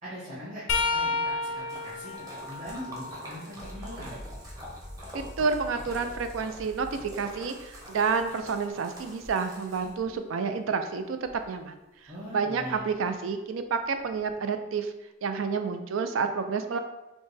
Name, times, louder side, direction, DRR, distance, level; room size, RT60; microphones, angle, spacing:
voice 1, 0.0-4.1 12.1-12.8, equal, 40° right, -11 dB, 1.5 m, -41 dB
sound 1, 0.7-4.5 5.0-6.9 9.8-10.0 11.3-11.4 12.8-12.9, left 3 dB, 75° left, 0.6 m, -34 dB
Splash splatter, 1.0-10.2, equal, 20° right, 0.9 m, -46 dB
sound 2, 3.6-8.6, equal, 15° left, 0.4 m, -46 dB
voice 2, 5.1-11.2 11.5-11.8 12.3-14.9 15.2-16.8, right 5 dB, 80° right, 8 dB, 0.4 m, -29 dB
5.8 x 2.2 x 3.3 m, 0.97 s
head